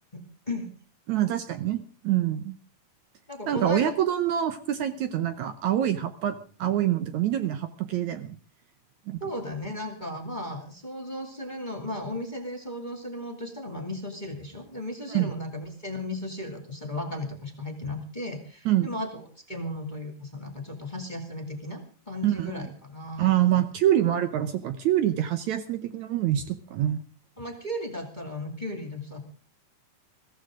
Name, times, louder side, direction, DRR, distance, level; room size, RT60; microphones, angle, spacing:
voice 1, 0.1-0.7 3.3-3.9 9.2-23.6 27.4-29.2, left 1 dB, 15° left, 3 dB, 2.1 m, -35 dB
voice 2, 1.1-2.6 3.5-8.4 9.1-9.2 15.1-15.3 18.7-18.9 22.2-22.7 23.2-27.0, right 11 dB, 70° right, 10 dB, 2.1 m, -26 dB
22.0 x 15.5 x 3.8 m, 0.38 s
omnidirectional pair, 3.8 m